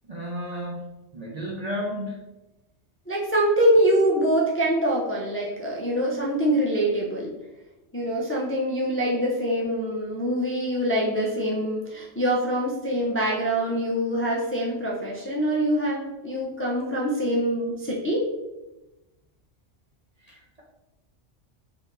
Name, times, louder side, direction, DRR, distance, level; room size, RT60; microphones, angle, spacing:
voice 1, 0.1-0.9 1.1-2.2 20.3-20.6, equal, 40° right, -2 dB, 0.6 m, -33 dB
voice 2, 3.1-7.3 7.9-18.3, equal, 15° left, -4 dB, 0.4 m, -24 dB
4.2 x 2.8 x 3.9 m, 1.0 s
omnidirectional pair, 1.2 m